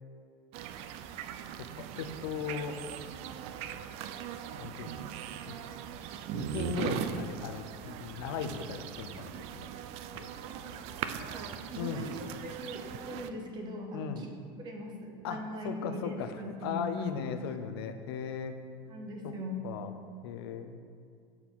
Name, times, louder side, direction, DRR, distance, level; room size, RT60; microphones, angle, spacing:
sound 1, 0.5-13.3, right 9 dB, 55° right, 0.4 m, -40 dB
voice 1, 1.6-2.8 4.6-5.0 5.5-5.6 6.3-9.7 10.1-10.3 11.8-12.1 13.9-14.2 15.2-18.6 19.2-19.3 19.6-19.9 20.2-20.8, left 7 dB, 80° left, 7 dB, 0.5 m, -37 dB
voice 2, 11.1-14.3 14.6-17.1 18.9-19.6, equal, 35° right, 2 dB, 1.1 m, -40 dB
7.4 x 4.3 x 4.0 m, 2.3 s
supercardioid pair, 125°, 13 cm